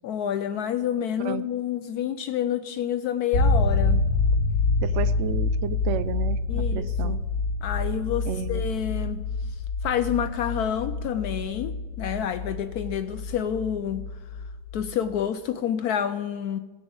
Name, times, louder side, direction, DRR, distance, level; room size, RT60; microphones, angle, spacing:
voice 1, 0.0-4.0 6.5-7.2 7.6-9.2 9.8-14.0 14.7-16.6, left 9 dB, 70° left, 11 dB, 1.0 m, -28 dB
sound 1, 3.3-15.3, left 3 dB, 55° left, 1.8 m, -27 dB
voice 2, 4.8-7.2 8.3-8.6, right 9 dB, 80° right, 15 dB, 0.6 m, -32 dB
16.0 x 6.1 x 7.9 m, 1.2 s
omnidirectional pair, 1.8 m